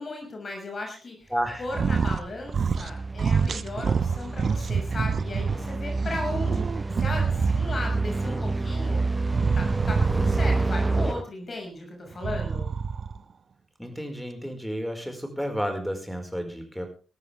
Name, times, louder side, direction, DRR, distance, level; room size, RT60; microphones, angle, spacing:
voice 1, 0.0-1.3 1.6-9.0 9.6-12.7, left 2 dB, 45° left, 2 dB, 6.2 m, -36 dB
voice 2, 1.3-2.1 13.8-16.9, equal, 5° left, 6 dB, 5.2 m, -32 dB
sound 1, 1.5-11.1, right 3 dB, 30° right, 1.1 m, -29 dB
sound 2, 1.7-2.2 2.5-2.9 3.2-5.6 6.0-7.9 9.3-10.7 12.1-13.2, right 6 dB, 55° right, 0.9 m, -26 dB
sound 3, 3.8-11.2, right 1 dB, 15° right, 2.9 m, -37 dB
20.5 x 13.0 x 3.5 m, 0.33 s
hypercardioid pair, 40°, 0 cm